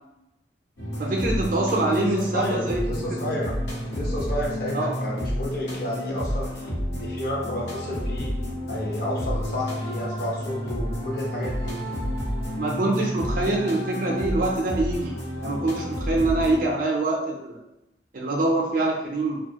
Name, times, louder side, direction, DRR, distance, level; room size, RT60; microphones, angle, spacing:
sound 1, 0.8-16.7, equal, 85° left, 1.0 m, -30 dB
voice 1, 1.0-2.8 4.7-4.9 12.6-17.6 18.1-19.4, right 2 dB, 50° right, -1 dB, 0.4 m, -25 dB
voice 2, 2.0-3.6 3.9-6.7 7.0-8.4 8.7-11.8, left 1 dB, 55° left, -3 dB, 0.7 m, -31 dB
2.6 x 2.3 x 2.8 m, 0.89 s
head